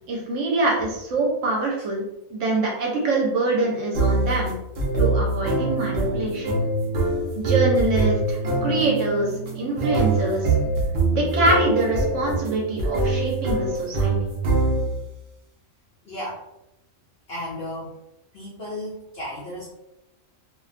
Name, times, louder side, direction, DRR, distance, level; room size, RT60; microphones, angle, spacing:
voice 1, 0.1-2.0 2.3-4.5 5.0-6.6 7.4-10.5 11.1-14.1, right 2 dB, 65° right, -1 dB, 0.8 m, -24 dB
sound 1, 3.9-15.1, right 2 dB, 80° right, 0.4 m, -24 dB
voice 2, 16.0-16.4 17.3-18.0 18.3-19.7, left 1 dB, 65° left, -6 dB, 0.6 m, -34 dB
2.5 x 2.2 x 2.4 m, 0.88 s
omnidirectional pair, 1.5 m